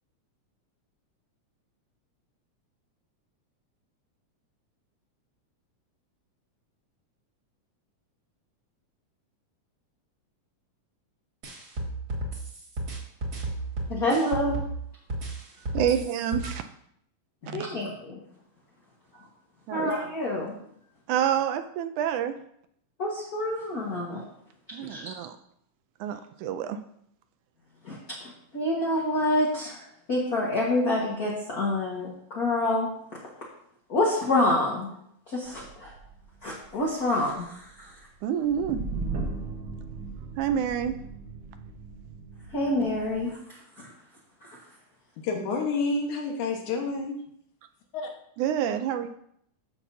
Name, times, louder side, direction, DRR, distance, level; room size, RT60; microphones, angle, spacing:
sound 1, 11.4-14.8 15.1-16.5, right 1 dB, 35° right, 2.0 m, -33 dB
voice 1, 13.9-14.6 15.8-15.9 17.4-18.2 19.7-20.5 23.0-24.2 24.9-25.1 27.9-28.0 28.2-29.8 30.1-32.9 33.9-34.9 35.3-35.9 36.4-37.9 42.5-43.4 43.8-43.9, left 1 dB, 45° left, -4 dB, 1.3 m, -27 dB
voice 2, 15.7-16.6 17.5-17.6 19.7-19.9 21.1-22.4 24.7-25.4 26.0-26.8 38.2-38.8 40.4-40.9 48.4-49.1, right 9 dB, 80° right, 9 dB, 1.9 m, -27 dB
sound 2, 35.4-43.3, right 3 dB, 55° right, 1.4 m, -38 dB
voice 3, 45.2-47.2 47.9-48.1, left 4 dB, 70° left, 2 dB, 2.7 m, -29 dB
14.0 x 6.2 x 2.7 m, 0.71 s
omnidirectional pair, 3.6 m